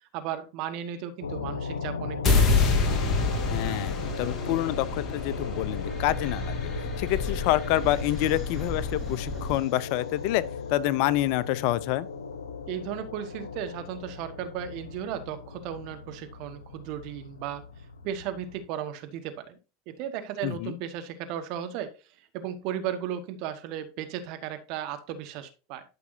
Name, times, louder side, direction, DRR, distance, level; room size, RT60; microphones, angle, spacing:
voice 1, 0.0-2.7 12.7-17.6 18.0-19.6 19.9-21.9 22.3-25.8, right 9 dB, 55° right, 1.6 m, -35 dB
sound 1, 1.2-18.6, left 5 dB, 85° left, 1.0 m, -37 dB
sound 2, 2.2-8.4, left 3 dB, 40° left, 2.1 m, -27 dB
voice 2, 3.5-10.4 10.7-12.1 20.4-20.8, left 15 dB, 60° left, 0.6 m, -27 dB
sound 3, 3.9-9.6, left 2 dB, 10° right, 4.5 m, -36 dB
12.0 x 6.0 x 2.7 m
hypercardioid pair, 85°, 0 cm